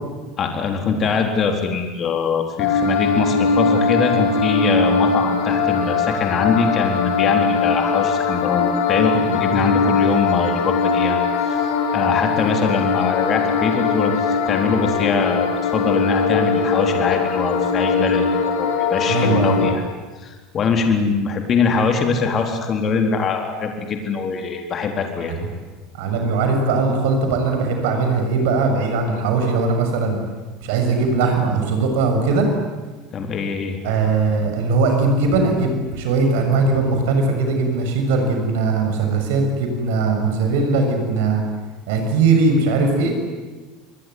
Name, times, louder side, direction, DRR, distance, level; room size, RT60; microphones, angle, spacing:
voice 1, 0.4-11.2 11.5-19.8 20.2-25.3 33.1-33.8, left 5 dB, 40° left, 4 dB, 3.9 m, -22 dB
sound 1, 2.6-19.7, left 5 dB, 70° left, 4.7 m, -20 dB
voice 2, 19.1-19.6 25.3-25.4 26.0-30.2 30.6-32.5 33.8-41.4 41.9-43.1, right 3 dB, 65° right, 4 dB, 6.8 m, -20 dB
27.5 x 22.0 x 9.7 m, 1.3 s
hypercardioid pair, 75°, 0 cm